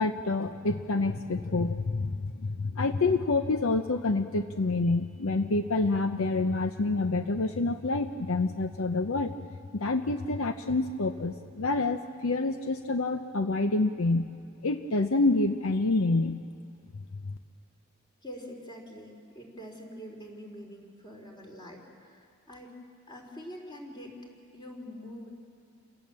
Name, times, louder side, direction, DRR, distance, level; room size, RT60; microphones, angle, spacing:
voice 1, 0.0-9.3 9.7-14.3 14.6-16.4 17.3-17.4, left 3 dB, 70° left, 8 dB, 0.7 m, -27 dB
voice 2, 18.2-22.7 23.1-24.2 24.5-25.3, equal, 20° left, 0 dB, 3.7 m, -45 dB
28.0 x 17.5 x 7.5 m, 2.4 s
head